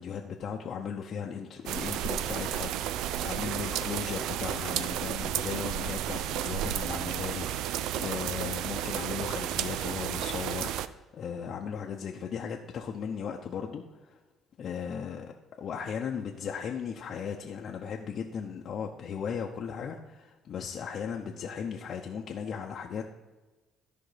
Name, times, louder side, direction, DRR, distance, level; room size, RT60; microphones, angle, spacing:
voice 1, 0.0-2.7 3.2-7.7 8.0-14.2 14.6-23.1, left 7 dB, 50° left, 0 dB, 0.8 m, -37 dB
sound 1, 1.7-10.9, right 11 dB, 80° right, 0.4 m, -32 dB
13.0 x 5.1 x 5.0 m, 1.2 s
cardioid pair, 115°, 0 cm